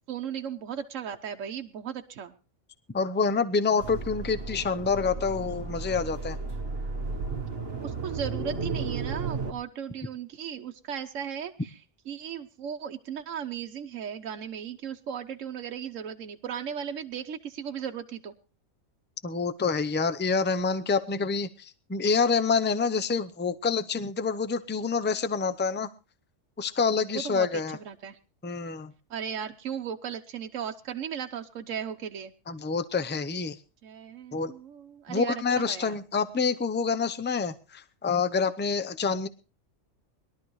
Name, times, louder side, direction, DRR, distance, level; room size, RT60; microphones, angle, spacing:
voice 1, 0.1-2.3 7.8-11.8 12.1-18.3 27.1-27.5 27.7-28.2 29.1-32.3 33.8-35.4 35.7-36.0, right 8 dB, 85° right, 5 dB, 1.3 m, -36 dB
voice 2, 2.9-6.4 19.2-25.9 26.6-27.8 28.4-28.9 32.5-33.6 34.3-34.5 35.1-39.3, left 5 dB, 15° left, 12 dB, 0.5 m, -27 dB
sound 1, 3.8-9.5, right 4 dB, 50° right, 1.4 m, -34 dB
21.5 x 12.0 x 3.1 m, 0.32 s
omnidirectional pair, 1.3 m